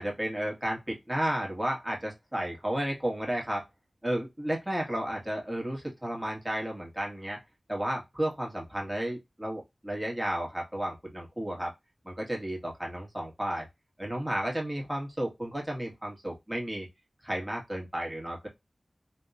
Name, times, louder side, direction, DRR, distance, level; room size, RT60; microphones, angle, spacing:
voice 1, 0.0-3.6 4.0-7.4 7.7-11.7 12.0-13.7 14.0-16.9 17.2-18.5, right 1 dB, 15° right, -1 dB, 1.7 m, -33 dB
3.4 x 3.1 x 2.5 m, 0.19 s
cardioid pair, 40°, 0 cm